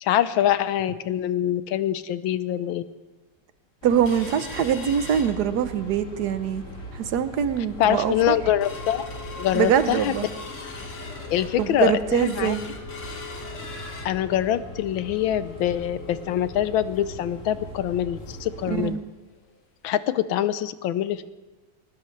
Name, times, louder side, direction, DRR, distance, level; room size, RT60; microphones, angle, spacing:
voice 1, 0.0-2.8 7.8-9.1 9.4-10.1 11.3-12.5 14.0-19.0 19.8-21.3, left 11 dB, 75° left, 14 dB, 1.4 m, -24 dB
sound 1, 3.8-18.9, right 1 dB, 40° left, 2.6 m, -40 dB
voice 2, 3.8-6.6 6.9-8.3 9.5-10.3 11.6-12.6 18.7-19.0, right 9 dB, 60° right, 11 dB, 1.2 m, -23 dB
sound 2, 4.1-5.9 6.3-6.4 6.8-7.1 7.6-7.7 8.0-18.6 18.9-19.0 19.4-19.5 20.1-20.2, left 4 dB, 60° left, 2.4 m, -41 dB
22.0 x 19.5 x 3.3 m, 1.1 s
omnidirectional pair, 2.3 m